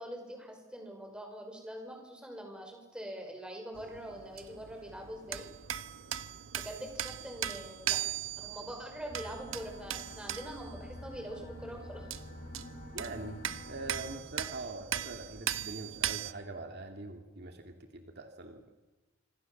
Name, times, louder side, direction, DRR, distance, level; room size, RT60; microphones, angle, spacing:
voice 1, 0.0-5.5 6.6-8.0 8.4-12.1, equal, 5° right, 2 dB, 5.8 m, -44 dB
sound 1, 3.7-16.3, right 10 dB, 70° right, 1.2 m, -39 dB
sound 2, 9.1-14.2, left 1 dB, 40° left, 2.9 m, -48 dB
voice 2, 12.9-18.6, right 2 dB, 50° right, 5 dB, 2.4 m, -43 dB
26.5 x 26.0 x 7.2 m, 1.1 s
head